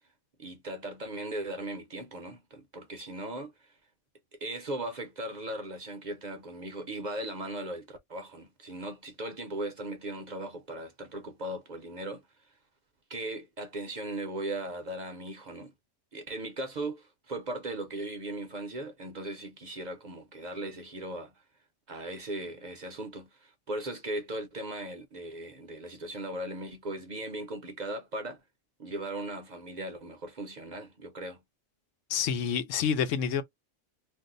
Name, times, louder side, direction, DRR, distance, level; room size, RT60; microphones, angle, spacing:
voice 1, 0.4-3.7 4.3-12.2 13.1-15.7 16.1-21.3 21.9-28.4 28.8-31.4, right 1 dB, 50° right, 0.6 m, -38 dB
voice 2, 32.1-33.4, left 7 dB, 90° left, 1.0 m, -28 dB
2.6 x 2.0 x 3.7 m
omnidirectional pair, 1.3 m